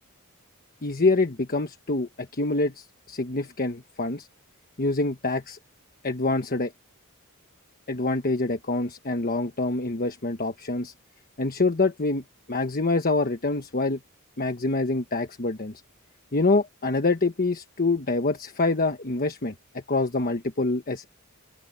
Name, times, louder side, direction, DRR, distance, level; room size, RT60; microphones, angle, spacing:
voice 1, 0.8-4.3 4.8-5.6 6.0-6.7 7.9-10.9 11.4-12.2 12.5-14.0 14.4-15.7 16.3-21.1, left 3 dB, 45° left, 1.2 m, -26 dB
open air
head